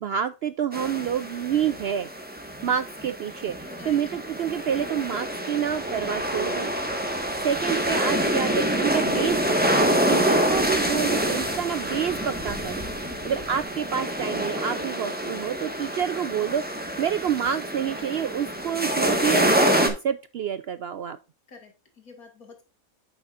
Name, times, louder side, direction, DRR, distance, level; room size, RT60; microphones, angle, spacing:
voice 1, 0.0-2.1 2.6-6.7 7.4-12.9 13.2-21.2, right 8 dB, 70° right, 0.6 m, -28 dB
sound 1, 0.7-19.9, equal, 5° right, 1.4 m, -26 dB
voice 2, 3.7-4.0 13.0-13.4 21.5-22.6, left 5 dB, 85° left, 2.6 m, -46 dB
sound 2, 5.7-13.7, left 1 dB, 10° left, 2.1 m, -44 dB
8.9 x 7.2 x 2.5 m
omnidirectional pair, 1.5 m